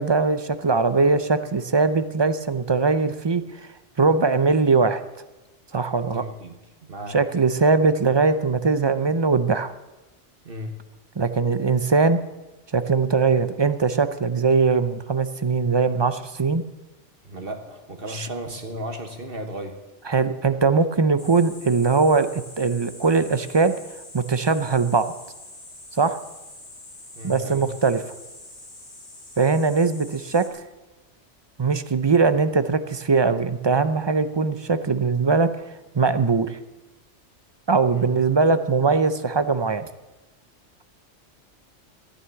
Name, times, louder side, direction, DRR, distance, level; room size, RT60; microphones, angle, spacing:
voice 1, 0.0-3.4 4.0-5.0 5.7-6.3 7.1-9.7 11.2-12.2 12.7-16.6 18.1-18.3 20.1-23.7 24.1-25.1 26.0-26.2 27.2-28.0 29.4-30.5 31.6-35.5 35.9-36.6 37.7-39.9, right 4 dB, 30° right, 11 dB, 0.5 m, -21 dB
voice 2, 6.0-6.6 6.9-7.2 10.4-10.8 17.2-19.8 27.1-27.7 37.9-38.1, equal, 50° right, 5 dB, 1.5 m, -35 dB
sound 1, 21.2-30.5, left 2 dB, 80° left, 3.0 m, -44 dB
14.0 x 9.8 x 7.0 m, 1.1 s
omnidirectional pair, 1.2 m